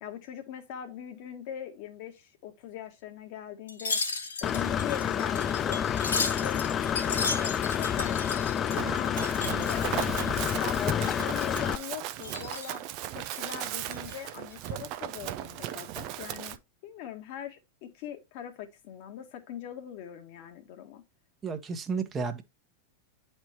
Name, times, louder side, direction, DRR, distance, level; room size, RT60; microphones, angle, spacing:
voice 1, 0.0-4.0 4.4-5.8 6.2-9.2 9.6-12.8 13.1-16.6 16.8-21.0, left 10 dB, 45° left, 1.7 m, -41 dB
Wind chime, 3.7-10.8 11.1-11.9 12.2-12.8 13.2-14.1 14.5-14.7, left 4 dB, 70° left, 2.7 m, -35 dB
Engine / Mechanisms, 4.4-11.8, left 8 dB, 25° left, 0.3 m, -29 dB
Run, 8.8-16.6, right 13 dB, 40° right, 0.6 m, -37 dB
voice 2, 21.4-22.4, right 5 dB, 20° right, 1.2 m, -32 dB
10.5 x 4.5 x 3.0 m
figure-of-eight pair, 90°, 0 cm